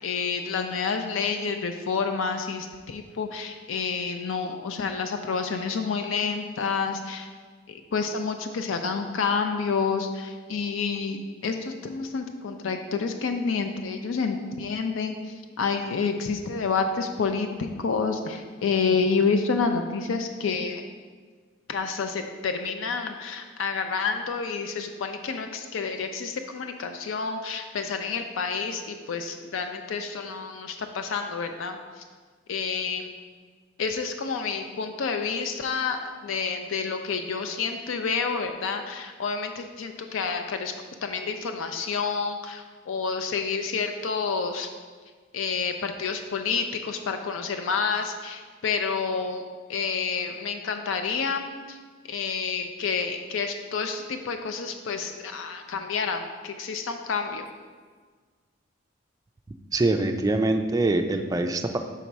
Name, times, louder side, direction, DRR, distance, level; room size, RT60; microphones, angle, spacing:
voice 1, 0.0-7.3 7.7-20.8 21.7-32.0 32.5-33.1 33.8-40.7 41.0-44.7 45.3-49.4 49.7-51.8 52.1-57.4, left 5 dB, 80° left, 6 dB, 0.4 m, -29 dB
voice 2, 59.7-61.8, right 2 dB, 20° right, 5 dB, 0.3 m, -24 dB
5.8 x 4.1 x 4.6 m, 1.5 s
head